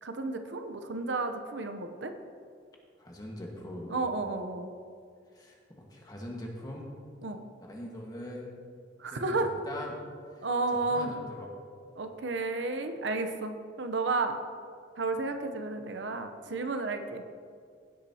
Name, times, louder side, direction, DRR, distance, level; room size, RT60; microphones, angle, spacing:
voice 1, 0.0-2.1 3.9-4.7 7.2-7.4 9.0-9.5 10.4-11.1 12.0-14.4 15.0-17.2, right 3 dB, 70° right, 7 dB, 0.8 m, -32 dB
voice 2, 3.0-3.9 5.3-5.6 5.9-6.9 7.6-8.6 9.1-10.0 10.4-10.5 10.9-11.5, left 1 dB, 20° left, -1 dB, 1.5 m, -41 dB
16.0 x 8.4 x 2.8 m, 2.2 s
head